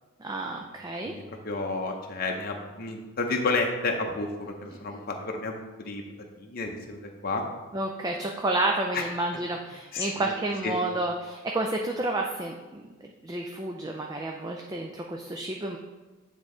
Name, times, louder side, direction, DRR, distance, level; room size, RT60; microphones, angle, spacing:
voice 1, 0.2-1.1 4.7-4.8 7.7-12.9 13.2-15.8, right 2 dB, 15° right, 1 dB, 0.3 m, -30 dB
voice 2, 1.0-6.0 6.4-7.5 8.9-9.1 9.9-10.3 10.6-10.8, left 3 dB, 40° left, 2 dB, 0.7 m, -31 dB
8.9 x 3.7 x 3.7 m, 1.3 s
head